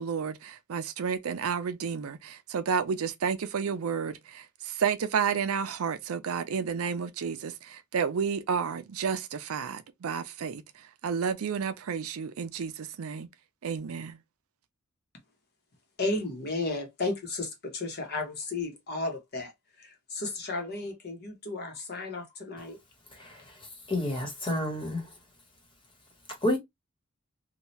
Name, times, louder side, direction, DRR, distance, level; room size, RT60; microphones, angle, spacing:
voice 1, 0.0-10.6 11.0-13.3 13.6-14.2, right 6 dB, 70° right, 0.5 m, -31 dB
voice 2, 16.0-19.5 19.8-22.8, left 3 dB, 50° left, 1.0 m, -33 dB
voice 3, 23.1-25.1 26.4-26.6, left 1 dB, 25° left, 1.2 m, -30 dB
2.8 x 2.3 x 3.1 m
head